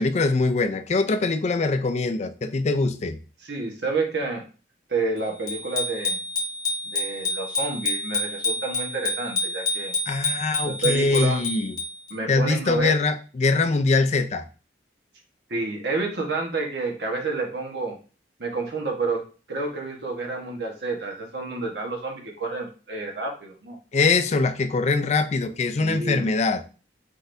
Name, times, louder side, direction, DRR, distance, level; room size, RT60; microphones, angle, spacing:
voice 1, 0.0-3.2 10.1-11.8 12.3-14.5 23.9-26.6, left 3 dB, 40° left, 0.4 m, -23 dB
voice 2, 3.4-4.4 4.9-6.2 6.8-9.9 10.7-11.4 12.1-13.0 15.5-18.0 18.4-23.8 25.8-26.3, right 3 dB, 65° right, 1.3 m, -29 dB
Bicycle bell, 5.5-12.1, left 2 dB, 20° left, 1.1 m, -28 dB
4.7 x 3.9 x 2.6 m
head